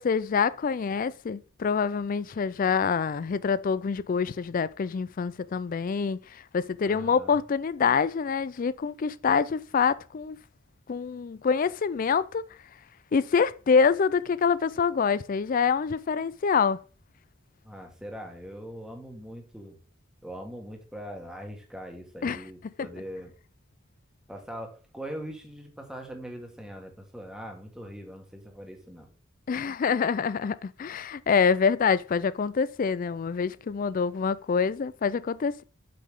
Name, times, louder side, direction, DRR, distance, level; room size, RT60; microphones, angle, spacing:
voice 1, 0.0-10.4 10.9-12.4 13.1-16.8 22.2-22.4 29.5-35.6, left 6 dB, 40° left, 0.3 m, -26 dB
voice 2, 6.8-7.4 17.6-19.8 20.2-23.3 24.3-29.1, equal, 5° right, 1.4 m, -41 dB
7.7 x 5.5 x 3.7 m
head